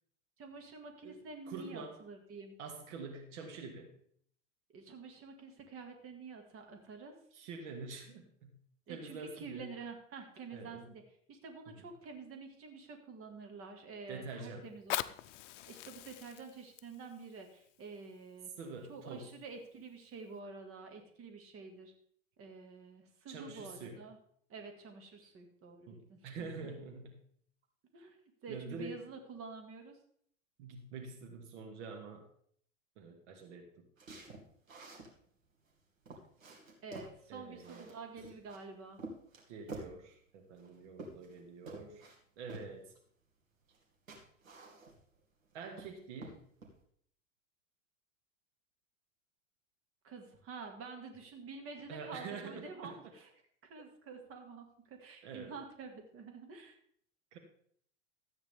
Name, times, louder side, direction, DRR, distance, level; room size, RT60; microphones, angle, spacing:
voice 1, 0.4-2.5 4.7-7.1 8.9-11.0 11.3-15.1 15.7-18.5 18.9-21.9 22.4-24.2 24.5-26.5 27.9-30.0 36.8-39.0 50.0-53.3 53.6-56.8, right 4 dB, 35° right, 4 dB, 2.1 m, -49 dB
voice 2, 1.0-2.0 2.6-3.9 7.3-8.6 8.9-9.7 10.5-10.9 14.1-14.7 18.6-19.3 23.3-24.0 25.9-27.2 28.5-29.0 30.6-32.3 33.0-33.9 37.3-37.9 39.5-42.1 42.4-42.9 45.5-46.5 51.9-52.9 55.2-55.5 57.3-57.4, right 4 dB, 60° right, 4 dB, 1.9 m, -46 dB
Fire, 14.6-19.6 20.2-20.3, left 14 dB, 65° left, 0.6 m, -43 dB
sound 1, 34.0-35.1 35.6-35.7 36.0-37.2 37.6-38.6 39.0-40.0 40.6-41.4 41.7-42.2 42.5-42.7 43.7-43.8 44.1-45.1 45.5-45.9 46.2-46.7, right 2 dB, 85° right, 2.4 m, -49 dB
13.5 x 8.8 x 3.5 m, 0.63 s
hypercardioid pair, 95°, 39 cm